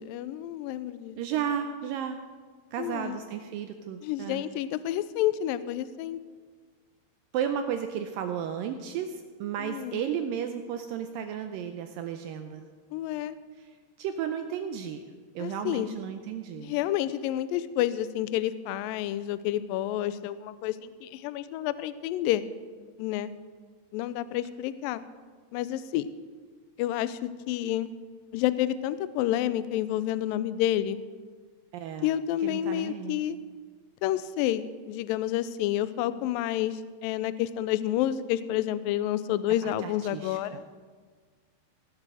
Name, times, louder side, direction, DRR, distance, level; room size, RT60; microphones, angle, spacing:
voice 1, 0.0-1.2 2.8-3.2 4.0-6.2 9.6-10.0 12.9-13.4 15.4-15.9 16.6-22.4 23.0-23.3 23.9-25.0 25.5-26.1 26.8-27.9 28.3-31.0 32.0-33.4 34.0-40.6, left 12 dB, 90° left, 15 dB, 2.0 m, -29 dB
voice 2, 1.2-2.2 2.7-4.4 7.3-12.7 13.6-13.7 14.0-15.0 15.4-16.7 31.7-32.1 32.4-33.2 39.6-40.4, right 8 dB, 80° right, 7 dB, 2.0 m, -33 dB
18.0 x 7.6 x 6.2 m, 1.5 s
omnidirectional pair, 4.6 m